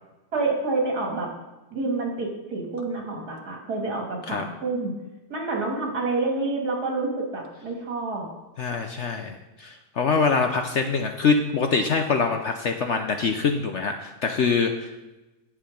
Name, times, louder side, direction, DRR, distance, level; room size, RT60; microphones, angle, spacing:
voice 1, 0.3-1.3 1.7-4.9 5.3-8.3, right 3 dB, 70° right, 0 dB, 2.6 m, -28 dB
voice 2, 8.6-14.9, left 5 dB, 60° left, 5 dB, 0.8 m, -24 dB
10.0 x 7.4 x 5.1 m, 1.1 s
omnidirectional pair, 1.7 m